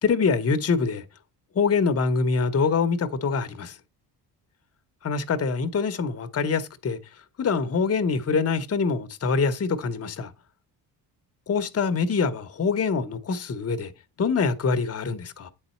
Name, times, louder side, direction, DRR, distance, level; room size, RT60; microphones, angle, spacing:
voice 1, 0.0-1.0 1.5-3.8 5.0-7.0 7.4-10.3 11.5-13.9 14.2-15.5, left 5 dB, 30° left, 0.9 m, -24 dB
8.7 x 4.1 x 4.3 m
supercardioid pair, 75°, 47 cm